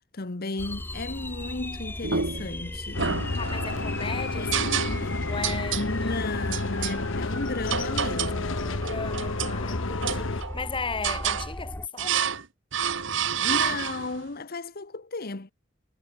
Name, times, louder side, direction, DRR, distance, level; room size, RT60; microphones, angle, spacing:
voice 1, 0.0-3.0 4.3-4.6 4.9-5.3 5.7-8.7 13.4-15.5, left 2 dB, 50° left, 1.2 m, -34 dB
sound 1, 0.6-11.9, left 1 dB, 10° left, 0.8 m, -36 dB
sound 2, 2.0-2.6 3.0-3.9 4.5-5.2 5.4-5.9 6.5-7.0 7.7-8.4 8.8-9.6 10.0-10.6 11.0-11.5 12.0-12.4 12.7-14.2, right 7 dB, 70° right, 1.4 m, -29 dB
sound 3, 2.9-10.4, left 3 dB, 80° left, 1.3 m, -31 dB
voice 2, 3.4-4.5 4.8-6.2 8.6-12.2, left 4 dB, 25° left, 1.8 m, -36 dB
head